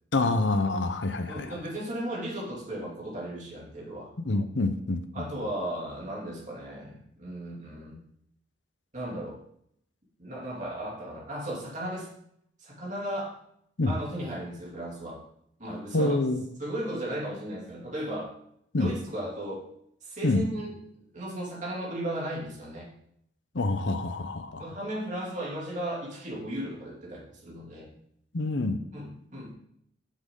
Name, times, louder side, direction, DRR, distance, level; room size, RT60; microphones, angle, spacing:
voice 1, 0.1-1.5 4.2-5.3 13.8-14.0 15.9-16.4 18.7-18.9 20.2-20.4 23.5-24.7 28.3-28.8, left 2 dB, 70° left, 9 dB, 0.8 m, -27 dB
voice 2, 1.3-4.1 5.1-8.0 8.9-9.4 10.2-12.1 12.6-13.4 13.8-15.2 15.6-16.2 16.6-18.3 18.8-19.7 20.0-20.7 21.1-22.9 24.6-27.9 28.9-29.6, right 1 dB, 40° right, -4 dB, 3.1 m, -35 dB
10.0 x 7.4 x 3.9 m, 0.72 s
head